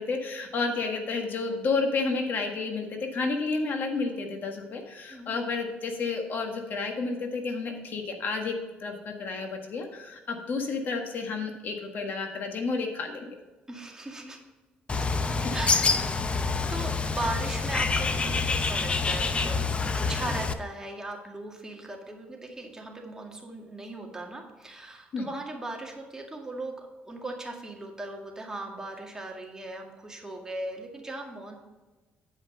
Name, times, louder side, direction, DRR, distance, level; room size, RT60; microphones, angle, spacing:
voice 1, 0.0-8.5 8.8-13.4 15.3-15.6 25.1-25.3, left 4 dB, 55° left, 3 dB, 1.6 m, -31 dB
voice 2, 13.7-14.4 15.5-16.2 16.7-19.6 19.9-31.5, right 2 dB, 15° right, 1 dB, 2.0 m, -38 dB
Bird, 14.9-20.5, left 4 dB, 30° left, 0.7 m, -27 dB
10.0 x 5.6 x 5.4 m, 1.2 s
cardioid pair, 90°, 4 cm